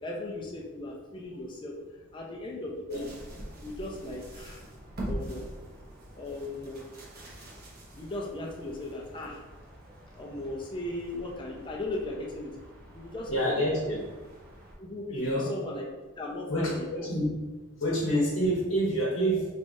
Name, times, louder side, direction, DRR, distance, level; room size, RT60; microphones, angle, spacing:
voice 1, 0.0-3.1 3.6-4.6 5.1-5.7 6.1-6.8 8.0-9.5 9.9-12.5 12.9-13.6 14.8-15.8 16.2-17.1, left 2 dB, 25° left, -2 dB, 0.5 m, -37 dB
sound 1, 2.9-14.8, right 1 dB, 45° right, 0.9 m, -44 dB
voice 2, 13.3-14.0 15.1-15.5 16.5-17.3 17.8-19.5, equal, 60° left, -4 dB, 1.0 m, -27 dB
4.8 x 3.1 x 2.7 m, 1.3 s
head